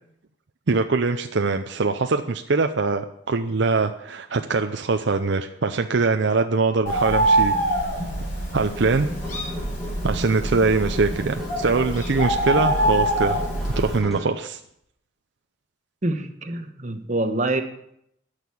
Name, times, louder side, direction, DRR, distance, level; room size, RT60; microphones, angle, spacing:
voice 1, 0.7-7.5 8.5-9.1 10.0-13.4 13.8-14.6, right 4 dB, 60° right, 6 dB, 0.6 m, -22 dB
Bird, 6.9-14.0, right 1 dB, 40° left, 3.9 m, -25 dB
sound 1, 8.7-14.4, equal, ahead, 2.1 m, -37 dB
voice 2, 16.0-17.6, right 2 dB, 35° right, 7 dB, 1.1 m, -26 dB
13.0 x 6.6 x 8.5 m, 0.75 s
head